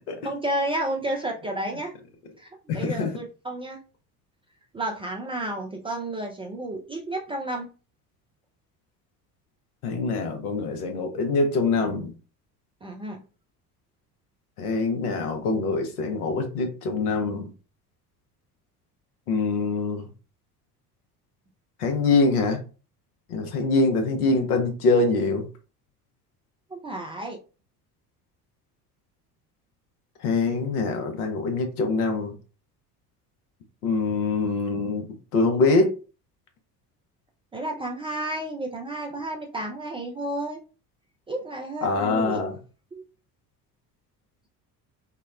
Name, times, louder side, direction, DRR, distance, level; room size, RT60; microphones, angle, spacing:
voice 1, 0.2-1.9 2.4-3.8 4.7-7.7 12.8-13.2 26.7-27.4 37.5-40.6 41.3-42.4 42.9-43.0, right 1 dB, 15° right, 0.3 m, -31 dB
voice 2, 2.7-3.1 9.8-12.1 14.6-17.5 19.3-20.0 21.8-22.6 23.3-25.5 30.2-32.3 33.8-35.1 35.3-35.9 41.8-42.5, left 3 dB, 75° left, 0.9 m, -24 dB
3.6 x 2.1 x 2.3 m
figure-of-eight pair, 55°, 46 cm